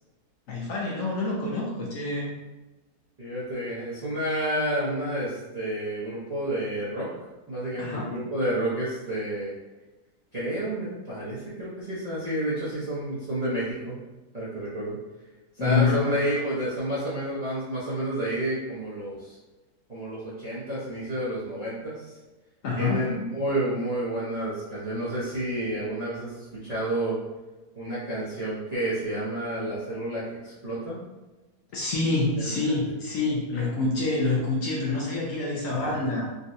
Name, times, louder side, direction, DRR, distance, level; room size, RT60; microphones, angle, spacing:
voice 1, 0.5-2.4 7.8-8.2 15.6-16.2 22.6-23.1 31.7-36.3, left 3 dB, 65° left, -4 dB, 0.9 m, -27 dB
voice 2, 3.2-7.1 7.5-9.5 10.3-14.0 14.3-15.0 15.6-19.4 19.9-22.2 22.8-27.2 27.7-31.0 32.4-32.6 33.7-33.8 35.7-36.0, right 1 dB, 35° right, -11 dB, 0.7 m, -30 dB
3.8 x 2.2 x 2.6 m, 1.1 s
omnidirectional pair, 1.7 m